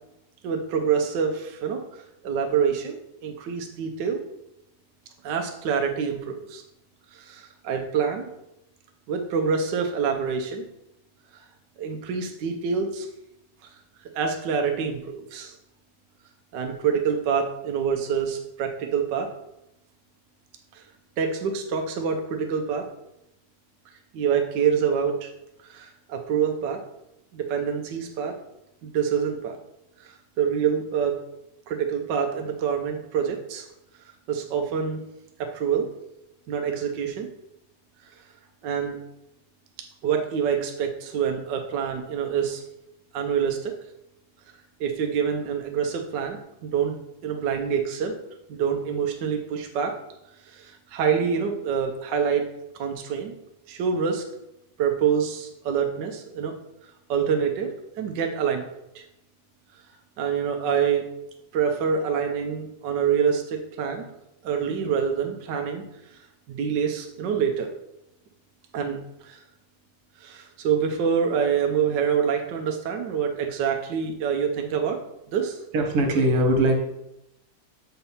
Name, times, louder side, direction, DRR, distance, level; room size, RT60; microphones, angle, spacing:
voice 1, 0.4-4.2 5.2-6.6 7.1-8.3 9.1-10.6 11.8-13.1 14.1-15.5 16.5-19.3 20.7-20.8 21.2-22.8 24.1-25.3 25.6-26.8 27.3-28.3 28.8-29.6 30.0-31.1 31.7-33.7 34.3-35.0 35.5-35.9 36.5-37.3 38.0-38.1 38.6-39.0 40.0-42.6 43.1-43.7 44.8-46.9 47.2-48.1 48.5-49.9 50.4-52.5 52.8-53.3 53.7-54.2 54.8-56.5 57.1-57.7 58.0-58.6 58.9-59.0 60.2-61.1 61.5-64.1 64.4-65.8 66.1-66.2 66.5-67.7 68.7-69.0 69.2-69.4 70.2-75.0 75.3-75.6, right 7 dB, 65° right, 3 dB, 1.2 m, -26 dB
voice 2, 75.7-76.8, right 1 dB, 90° right, 3 dB, 2.1 m, -20 dB
6.7 x 4.3 x 5.5 m, 0.88 s
omnidirectional pair, 2.4 m